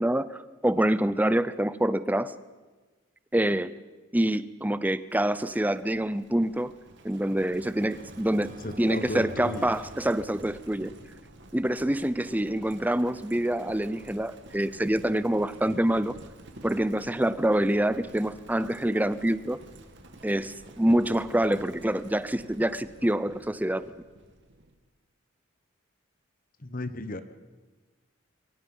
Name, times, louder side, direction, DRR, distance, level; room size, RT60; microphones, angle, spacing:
voice 1, 0.0-2.3 3.3-3.7 4.1-6.7 7.0-8.5 8.8-10.9 11.5-16.2 16.6-19.6 20.2-23.9, right 1 dB, 10° right, 15 dB, 0.6 m, -26 dB
Livestock farm animals working animals, 5.1-24.7, right 1 dB, 60° right, 2.1 m, -50 dB
sound 1, 6.5-10.9, right 2 dB, 40° right, 0.9 m, -48 dB
voice 2, 8.5-9.7 26.6-27.2, left 1 dB, 40° left, 11 dB, 1.1 m, -35 dB
26.5 x 23.0 x 5.5 m, 1.3 s
head